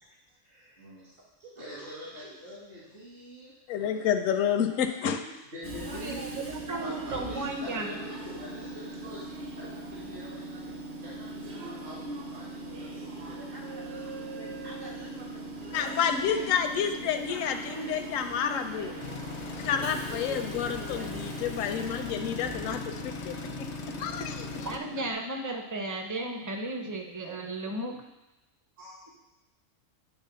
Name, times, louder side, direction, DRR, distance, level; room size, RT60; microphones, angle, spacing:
voice 1, 0.0-1.0 1.4-1.9 2.2-2.4 5.1-5.4 5.8-6.3 6.7-7.4 7.9-8.1 13.1-17.6 21.0-22.0 23.9-24.0 27.3-27.4 27.7-27.8, right 2 dB, 80° right, -5 dB, 2.3 m, -49 dB
voice 2, 0.8-1.1 1.6-3.6 3.9-4.1 5.5-13.4 21.8-21.9 23.8-23.9 28.8-28.9, equal, 60° right, -9 dB, 2.4 m, -45 dB
voice 3, 3.7-5.2 15.7-19.0 19.6-23.3 24.0-24.7, left 8 dB, 85° left, 6 dB, 1.0 m, -29 dB
Train / Subway metro underground, 5.6-25.1, right 2 dB, 45° right, 1.0 m, -40 dB
voice 4, 6.0-7.9 24.6-27.9, right 2 dB, 20° right, 3 dB, 0.5 m, -34 dB
sound 1, 19.0-24.8, left 7 dB, 50° left, 0.5 m, -40 dB
9.0 x 3.5 x 5.7 m, 0.98 s
omnidirectional pair, 1.3 m